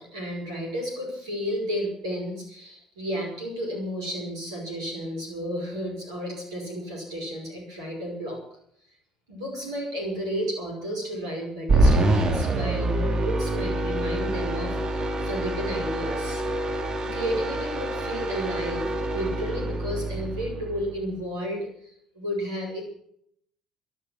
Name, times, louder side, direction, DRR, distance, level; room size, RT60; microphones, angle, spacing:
voice 1, 0.0-8.4 9.3-16.4 17.0-22.8, equal, 75° right, 0 dB, 5.3 m, -32 dB
sound 1, 11.7-21.1, right 1 dB, 35° right, 3.6 m, -26 dB
18.0 x 12.0 x 6.1 m, 0.68 s
figure-of-eight pair, 55°, 2 cm